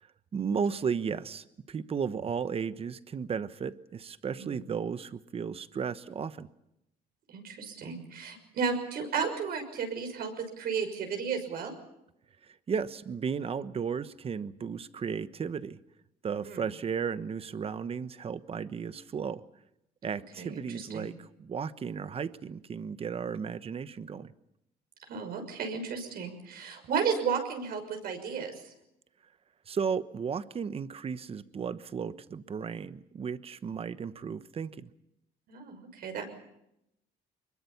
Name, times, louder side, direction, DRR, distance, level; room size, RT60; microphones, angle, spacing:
voice 1, 0.3-6.5 12.7-15.8 16.2-19.4 20.0-24.3 29.7-34.9, right 6 dB, 35° right, 14 dB, 1.1 m, -34 dB
voice 2, 7.3-11.7 16.4-16.6 20.1-21.1 25.1-28.7 35.5-36.3, right 6 dB, 65° right, 5 dB, 6.2 m, -34 dB
24.5 x 22.0 x 7.1 m, 0.83 s
cardioid pair, 110°, 17 cm